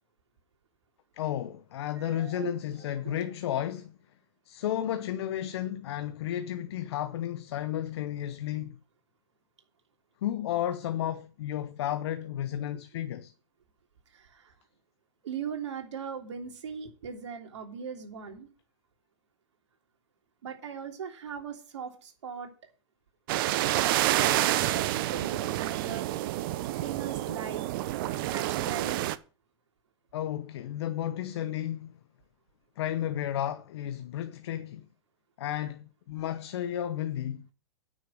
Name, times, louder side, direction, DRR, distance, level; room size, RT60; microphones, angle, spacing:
voice 1, 1.1-4.0 4.4-8.8 10.2-13.3 30.1-32.0 32.8-34.9 35.4-37.5, left 11 dB, 60° left, 0.9 m, -33 dB
voice 2, 1.9-2.5 2.8-3.2 14.1-14.5 15.2-18.5 20.4-22.5 23.7-26.1 26.8-27.6 28.3-29.0, right 7 dB, 70° right, 3.3 m, -39 dB
sound 1, 23.3-29.2, right 15 dB, 45° right, 0.8 m, -28 dB
9.2 x 6.5 x 7.8 m
hypercardioid pair, 120°, 16 cm